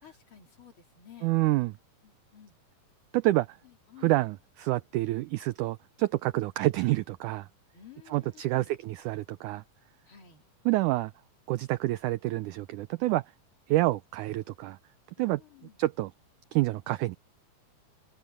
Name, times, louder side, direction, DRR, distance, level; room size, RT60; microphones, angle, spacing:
voice 1, 0.0-1.4 2.0-2.6 3.6-4.2 7.7-8.7 10.0-10.5 15.2-15.8, left 9 dB, 40° left, 3.4 m, -53 dB
voice 2, 1.2-1.7 3.1-3.6 4.0-7.5 8.1-9.6 10.7-11.1 11.5-13.3 13.7-14.8 15.2-15.4 15.8-16.1 16.5-17.2, right 17 dB, 80° right, 1.8 m, -28 dB
omnidirectional pair, 4.1 m